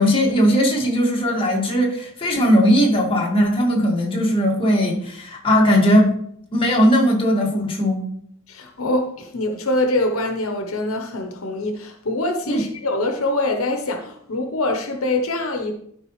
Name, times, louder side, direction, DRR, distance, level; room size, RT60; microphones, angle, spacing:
voice 1, 0.0-6.1 6.5-8.0 12.5-12.6, equal, 25° left, -2 dB, 2.0 m, -18 dB
voice 2, 8.5-15.7, left 2 dB, 85° left, 4 dB, 1.1 m, -24 dB
12.5 x 5.2 x 3.2 m, 0.68 s
head